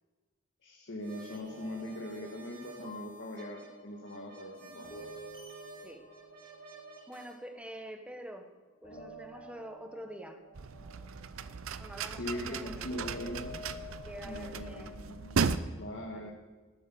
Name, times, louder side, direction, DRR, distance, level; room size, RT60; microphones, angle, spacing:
voice 1, 0.6-5.0 12.0-13.6 14.2-16.3, left 1 dB, 60° left, -1 dB, 1.6 m, -41 dB
sound 1, 1.0-7.4, right 2 dB, 55° right, 3.6 m, -52 dB
sound 2, 1.3-8.6 8.8-15.5, left 1 dB, 35° left, 4.3 m, -51 dB
voice 2, 7.1-8.5 8.8-10.4 11.8-13.2 14.0-15.0 16.1-16.3, equal, 5° right, 6 dB, 1.2 m, -46 dB
sound 3, 10.5-15.6, right 5 dB, 85° right, 0.6 m, -36 dB
12.5 x 9.7 x 7.0 m, 1.3 s
head